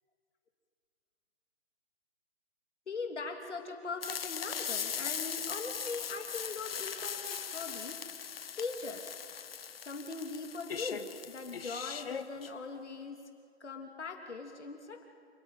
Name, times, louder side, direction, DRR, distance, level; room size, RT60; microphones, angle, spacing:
voice 1, 2.9-9.5 9.8-13.2 13.6-15.1, left 4 dB, 85° left, 3 dB, 3.1 m, -41 dB
sound 1, 4.0-12.5, left 7 dB, 60° left, 1.1 m, -39 dB
27.5 x 19.0 x 9.0 m, 2.3 s
hypercardioid pair, 165°, 34 cm